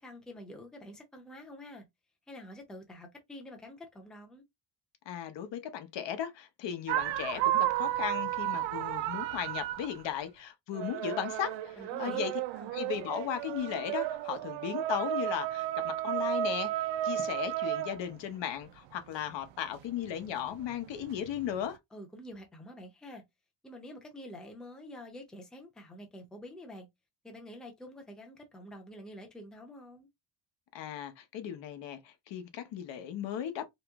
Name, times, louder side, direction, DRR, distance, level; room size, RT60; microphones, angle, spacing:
voice 1, 0.0-1.8 2.3-4.4 11.8-12.2 12.5-12.7 21.9-23.2 23.6-26.9 27.2-30.1, left 1 dB, ahead, 0.6 m, -47 dB
voice 2, 5.1-12.3 12.7-16.7 17.0-21.8 30.7-33.7, left 10 dB, 70° left, 0.9 m, -36 dB
sound 1, 6.9-10.1 10.7-18.2 20.1-21.6, right 13 dB, 80° right, 0.5 m, -33 dB
3.1 x 2.9 x 3.5 m
cardioid pair, 180°, 45 cm